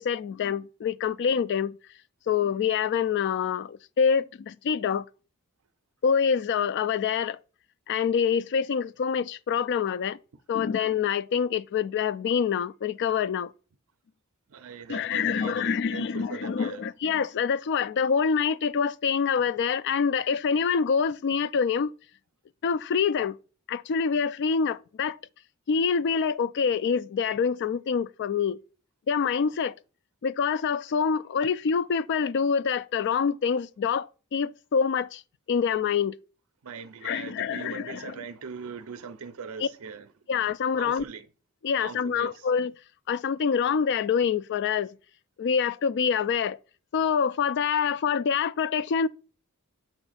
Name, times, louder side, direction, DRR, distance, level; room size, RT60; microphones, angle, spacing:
voice 1, 0.0-1.8 2.3-5.0 6.0-7.4 7.9-10.2 10.5-13.5 14.9-21.9 22.6-23.3 23.7-25.2 25.7-28.6 29.1-29.7 30.2-35.2 35.5-36.2 37.0-38.2 39.6-39.7 40.3-41.0 41.6-42.7 43.1-44.9 45.4-46.6 46.9-49.1, left 6 dB, 55° left, 0.3 m, -26 dB
voice 2, 14.5-16.8 36.6-40.1 40.7-41.3 41.8-42.5, right 6 dB, 70° right, 0.5 m, -40 dB
6.9 x 2.6 x 5.7 m
head